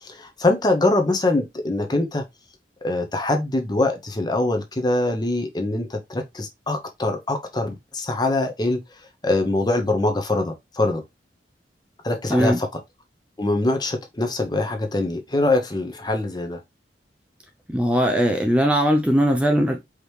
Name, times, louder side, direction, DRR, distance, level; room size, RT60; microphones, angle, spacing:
voice 1, 0.0-2.2 2.8-8.8 9.2-11.0 12.0-12.7 13.4-16.6, left 2 dB, 25° left, 0.8 m, -23 dB
voice 2, 17.7-19.8, equal, 5° right, 0.5 m, -19 dB
5.0 x 2.9 x 3.2 m
head